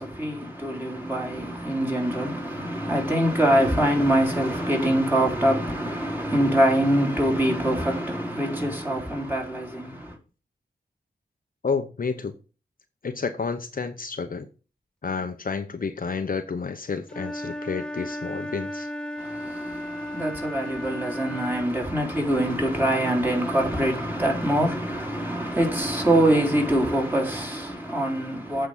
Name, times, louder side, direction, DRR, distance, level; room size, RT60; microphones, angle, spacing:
voice 1, 0.0-10.2 19.2-28.7, right 1 dB, 10° right, 3.8 m, -24 dB
voice 2, 11.6-12.3 13.0-14.5 15.0-18.9, left 5 dB, 50° left, 0.8 m, -30 dB
Wind instrument woodwind instrument, 17.1-21.7, left 1 dB, 5° left, 1.2 m, -34 dB
8.3 x 5.0 x 7.2 m
wide cardioid pair, 70°, 18 cm